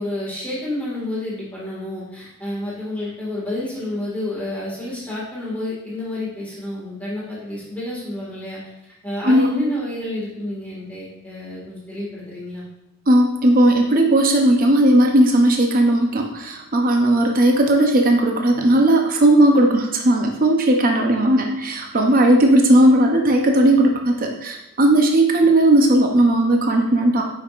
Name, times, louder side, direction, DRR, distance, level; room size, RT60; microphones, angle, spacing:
voice 1, 0.0-8.6 9.0-12.7, left 1 dB, 5° left, -7 dB, 1.9 m, -29 dB
voice 2, 13.1-27.2, right 1 dB, 40° right, 2 dB, 0.7 m, -16 dB
8.4 x 5.4 x 2.5 m, 0.91 s
head